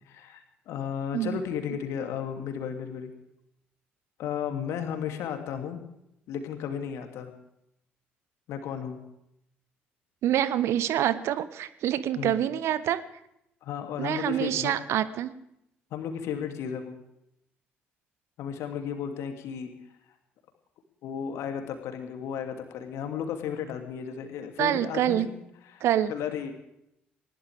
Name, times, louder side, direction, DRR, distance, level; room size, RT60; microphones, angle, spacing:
voice 1, 0.1-3.1 4.2-5.9 6.3-7.3 8.5-9.0 12.2-12.4 13.6-14.7 15.9-17.0 18.4-19.7 21.0-25.4 25.7-26.5, left 8 dB, 55° left, 5 dB, 2.7 m, -34 dB
voice 2, 10.2-13.0 14.0-15.3 24.6-25.3 25.8-26.1, right 11 dB, 55° right, 16 dB, 1.0 m, -26 dB
20.5 x 19.0 x 3.6 m, 0.78 s
figure-of-eight pair, 45°, 6 cm